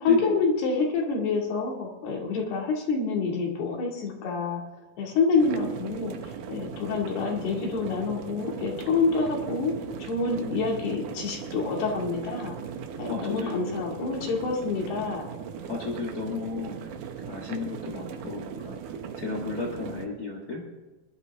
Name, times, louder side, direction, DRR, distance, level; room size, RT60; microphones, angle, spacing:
voice 1, 0.0-4.6 5.0-9.7 10.0-12.5 13.0-15.3, left 4 dB, 90° left, -1 dB, 4.3 m, -27 dB
sound 1, 5.4-20.1, right 7 dB, 70° right, 2.2 m, -38 dB
voice 2, 13.0-13.8 15.7-17.0 17.2-20.7, left 3 dB, 75° left, 0 dB, 0.8 m, -35 dB
20.0 x 11.5 x 3.5 m, 1.2 s
omnidirectional pair, 4.5 m